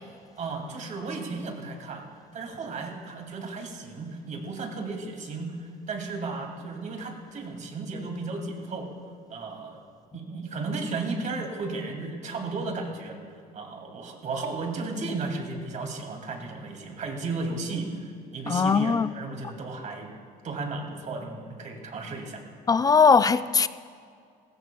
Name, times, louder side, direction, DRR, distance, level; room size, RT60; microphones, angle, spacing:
voice 1, 0.4-2.0 2.3-8.9 9.3-9.8 10.1-13.2 13.5-20.1 20.4-22.4, right 3 dB, 45° right, 2.4 m, -34 dB
voice 2, 18.5-19.1 22.7-23.7, left 5 dB, 20° left, 0.4 m, -20 dB
19.5 x 16.0 x 2.3 m
cardioid pair, 110°, 17 cm